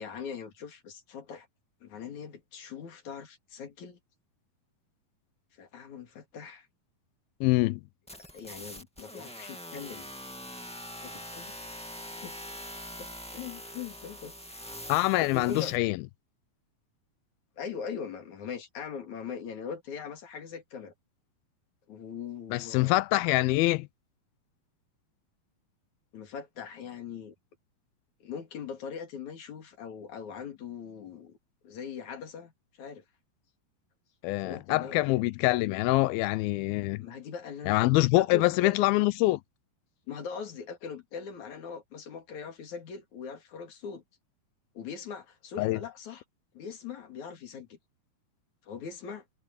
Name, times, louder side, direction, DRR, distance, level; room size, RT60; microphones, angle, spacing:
voice 1, 0.0-1.5 1.8-4.0 5.6-6.7 8.2-10.1 11.0-11.5 12.2-12.5 13.0-14.6 15.2-15.7 17.6-20.9 21.9-23.0 26.1-27.3 28.2-31.4 31.6-32.5 32.8-33.0 34.4-35.1 37.0-37.9 38.2-38.9 40.1-44.0 44.8-46.2 46.5-47.8 48.7-49.2, left 6 dB, 55° left, 3.6 m, -41 dB
voice 2, 7.4-7.8 14.9-16.0 22.5-23.9 34.2-37.0 37.7-39.4 45.6-45.8, left 19 dB, 90° left, 2.5 m, -25 dB
sound 1, 8.1-15.8, equal, 5° left, 0.6 m, -43 dB
omnidirectional pair, 4.2 m